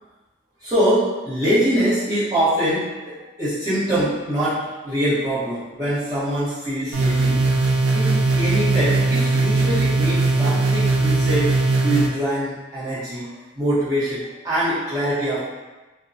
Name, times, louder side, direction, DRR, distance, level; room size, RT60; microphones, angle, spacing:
voice 1, 0.6-7.4 7.9-11.6 11.8-15.4, right 1 dB, 20° right, -14 dB, 1.0 m, -23 dB
sound 1, 6.9-12.1, right 3 dB, 90° right, 0.4 m, -19 dB
2.7 x 2.2 x 2.5 m, 1.1 s
head